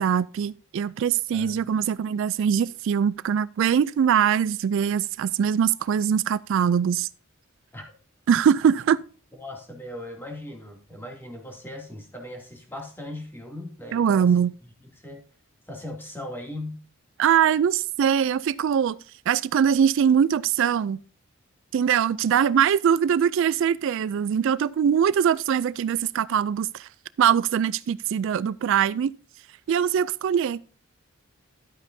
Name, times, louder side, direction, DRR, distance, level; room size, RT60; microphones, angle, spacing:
voice 1, 0.0-7.1 8.3-9.0 13.9-14.5 17.2-19.0 19.3-21.0 21.7-26.9 27.2-29.1 29.7-30.7, right 8 dB, 65° right, 0.3 m, -22 dB
voice 2, 9.4-14.3 15.0-15.2 15.7-16.8, left 1 dB, 10° left, 2.5 m, -38 dB
12.0 x 8.9 x 2.7 m
head